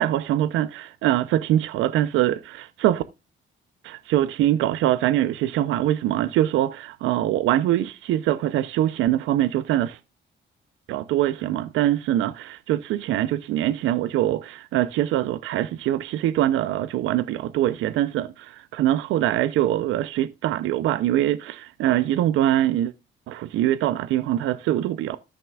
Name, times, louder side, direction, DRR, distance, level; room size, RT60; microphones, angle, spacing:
voice 1, 0.0-3.0 3.8-10.0 10.9-22.9 23.3-25.2, right 13 dB, 90° right, 0.6 m, -23 dB
14.0 x 6.0 x 2.3 m
cardioid pair, 90°, 20 cm